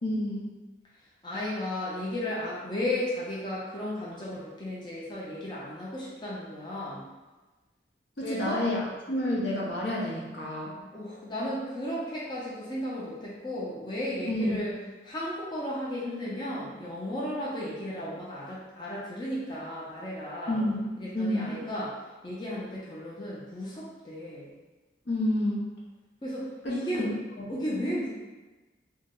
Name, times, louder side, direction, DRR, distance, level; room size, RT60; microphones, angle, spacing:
voice 1, 0.0-0.5 8.2-10.7 14.3-14.6 20.5-21.6 25.1-25.6 26.6-27.4, left 1 dB, 75° left, -4 dB, 0.7 m, -29 dB
voice 2, 1.2-7.0 8.2-8.6 10.8-14.7 15.0-20.6 21.0-21.9 22.2-24.5 26.2-27.1 27.5-28.1, left 1 dB, 25° left, -7 dB, 0.5 m, -34 dB
2.8 x 2.0 x 3.5 m, 1.2 s
head